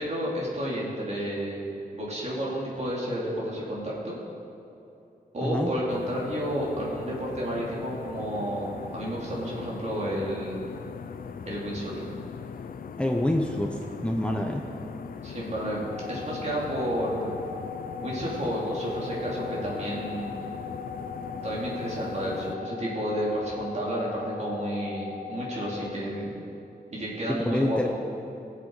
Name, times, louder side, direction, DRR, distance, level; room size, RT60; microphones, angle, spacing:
voice 1, 0.0-1.7 1.9-4.2 5.3-10.6 11.4-12.1 15.2-17.3 18.0-20.4 21.4-26.3 26.9-27.9, equal, 45° right, -5 dB, 3.1 m, -31 dB
sound 1, 5.9-22.6, left 6 dB, 70° left, 0.5 m, -40 dB
voice 2, 13.0-14.7 27.3-27.9, left 1 dB, 5° left, 2 dB, 0.7 m, -27 dB
sound 2, 15.9-25.9, left 6 dB, 15° right, 3.2 m, -39 dB
20.5 x 7.7 x 4.8 m, 2.9 s
wide cardioid pair, 160°, 15 cm